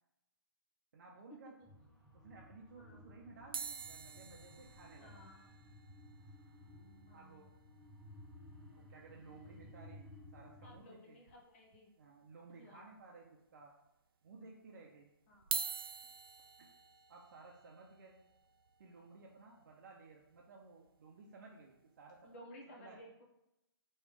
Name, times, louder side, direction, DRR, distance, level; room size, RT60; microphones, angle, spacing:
voice 1, 0.9-1.6 2.1-5.2 7.1-7.5 8.7-11.2 12.0-13.7 14.2-15.1 16.6-16.7 17.1-18.2 18.8-23.0, right 3 dB, 50° right, -2 dB, 0.7 m, -57 dB
sound 1, 1.6-10.8, left 1 dB, ahead, 0.4 m, -57 dB
sound 2, 3.5-7.9 8.2-8.3 8.4-8.6 9.0-9.1 10.5-10.6 11.3-11.8 12.3-12.4 13.2-13.3 15.3-21.4 22.0-22.2, right 7 dB, 65° right, 0.4 m, -46 dB
voice 2, 5.0-5.5 7.1-7.5 10.6-11.9 12.6-12.9 15.3-15.6 22.2-23.2, equal, 30° left, -1 dB, 1.0 m, -57 dB
3.3 x 3.1 x 4.8 m, 0.88 s
hypercardioid pair, 165°, 13 cm